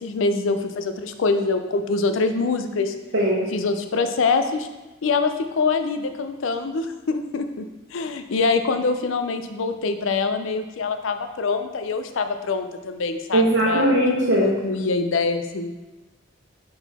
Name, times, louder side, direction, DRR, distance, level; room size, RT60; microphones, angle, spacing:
voice 1, 0.0-2.9 3.5-4.7 5.0-7.6 7.9-14.0 14.4-15.7, left 4 dB, 85° left, 8 dB, 0.5 m, -24 dB
voice 2, 3.1-3.5 13.3-14.5, right 1 dB, 60° right, -7 dB, 1.0 m, -19 dB
6.0 x 3.9 x 4.1 m, 1.1 s
head